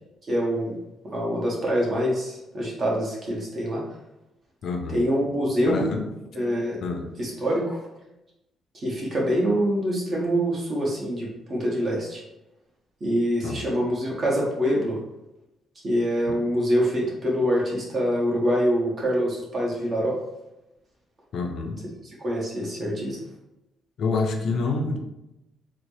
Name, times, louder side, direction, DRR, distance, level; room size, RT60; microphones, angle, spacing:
voice 1, 0.3-0.7 1.1-3.8 4.9-5.8 6.3-6.8 7.2-7.8 8.7-12.2 13.0-15.0 15.8-20.2 22.2-23.2, equal, 35° right, -3 dB, 1.1 m, -25 dB
voice 2, 4.6-5.0 5.7-6.0 6.8-7.1 13.4-13.6 16.3-16.4 21.3-21.8 24.0-25.0, left 4 dB, 60° left, 4 dB, 0.5 m, -27 dB
3.9 x 2.0 x 3.2 m, 0.91 s
cardioid pair, 120°, 0 cm